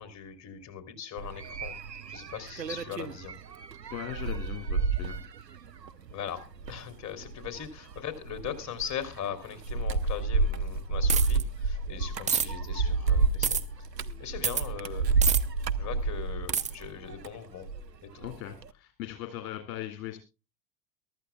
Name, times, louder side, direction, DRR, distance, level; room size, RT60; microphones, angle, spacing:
voice 1, 0.0-1.7 2.1-3.3 6.1-6.4 6.7-13.6 14.2-15.1 15.7-17.7 18.0-18.3, left 9 dB, 35° left, 11 dB, 3.1 m, -39 dB
sound 1, 1.2-17.9 18.2-18.7, right 4 dB, 85° right, 0.8 m, -30 dB
voice 2, 3.9-5.2 18.2-20.2, left 12 dB, 55° left, 6 dB, 2.2 m, -39 dB
sound 2, 11.1-11.4 12.3-12.5 13.4-13.6 14.4-14.7 15.2-15.4 16.5-16.7, right 7 dB, 15° right, 0.9 m, -26 dB
23.0 x 12.5 x 2.2 m, 0.29 s
figure-of-eight pair, 75°, 48 cm